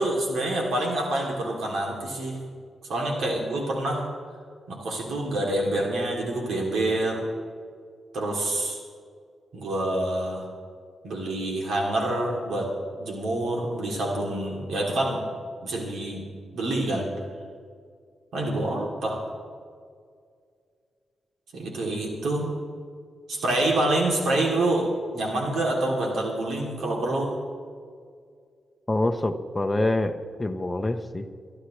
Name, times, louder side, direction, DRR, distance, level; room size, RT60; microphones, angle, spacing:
voice 1, 0.0-2.5 2.9-4.0 4.7-7.2 8.1-8.8 9.5-10.5 11.0-12.7 13.0-15.2 15.6-16.2 16.5-17.1 18.3-19.2 21.5-22.5 23.3-27.3, right 1 dB, 75° right, -2 dB, 2.9 m, -27 dB
voice 2, 28.9-31.2, left 2 dB, 15° left, 6 dB, 0.8 m, -26 dB
23.5 x 12.0 x 3.2 m, 2.1 s
wide cardioid pair, 155°, 0 cm